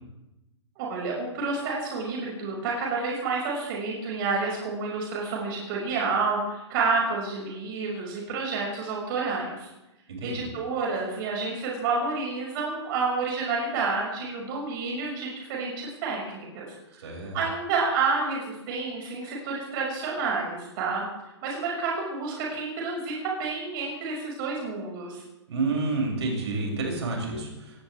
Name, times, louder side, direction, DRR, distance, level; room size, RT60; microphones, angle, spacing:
voice 1, 0.8-9.7 10.2-16.7 16.9-17.0 17.3-21.0 21.4-25.2, right 4 dB, 45° right, -2 dB, 6.4 m, -29 dB
voice 2, 10.1-10.5 17.0-17.4 25.5-27.8, right 3 dB, 65° right, 0 dB, 7.4 m, -29 dB
23.0 x 17.5 x 3.6 m, 0.96 s
hypercardioid pair, 125°, 15 cm